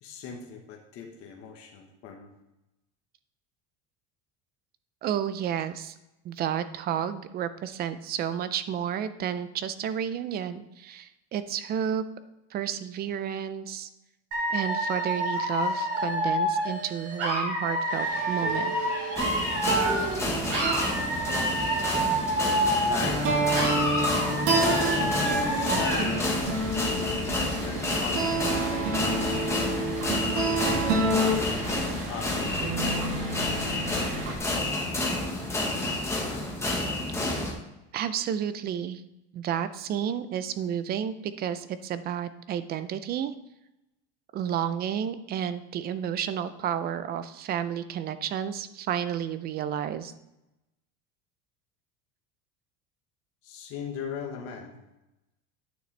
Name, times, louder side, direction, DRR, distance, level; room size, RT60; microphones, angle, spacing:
voice 1, 0.0-2.3 22.8-23.4 24.5-29.4 30.3-34.3 53.4-54.8, left 6 dB, 45° left, 1 dB, 1.2 m, -40 dB
voice 2, 5.0-5.9 6.2-12.0 12.5-13.9 14.5-18.7 34.9-35.0 37.9-39.0 39.3-43.3 44.3-50.1, right 9 dB, 30° right, 13 dB, 0.4 m, -31 dB
Dog / Alarm, 14.3-20.2 20.5-23.2 23.5-26.2, right 1 dB, 45° right, 3.1 m, -28 dB
sound 1, 17.9-34.3, right 2 dB, 75° right, 2.5 m, -29 dB
sound 2, 19.2-37.5, left 2 dB, 10° left, 1.2 m, -30 dB
9.4 x 6.6 x 3.3 m, 0.94 s
cardioid pair, 160°, 33 cm